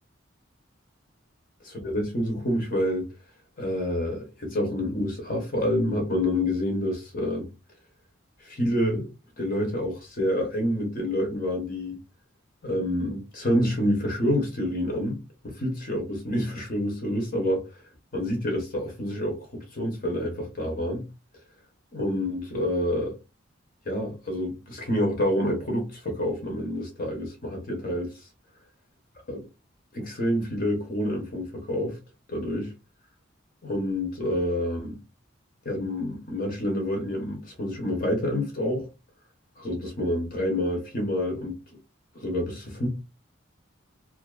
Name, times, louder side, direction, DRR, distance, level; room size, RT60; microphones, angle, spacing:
voice 1, 1.8-3.1 3.6-7.5 8.4-9.1 9.4-12.0 12.6-17.8 18.1-21.0 21.9-23.1 23.9-28.3 29.3-29.5 29.9-32.0 32.3-32.7 33.6-35.0 35.6-38.9 39.6-41.6 42.1-42.9, left 1 dB, 45° left, 0.7 m, -28 dB
2.4 x 2.3 x 2.2 m
head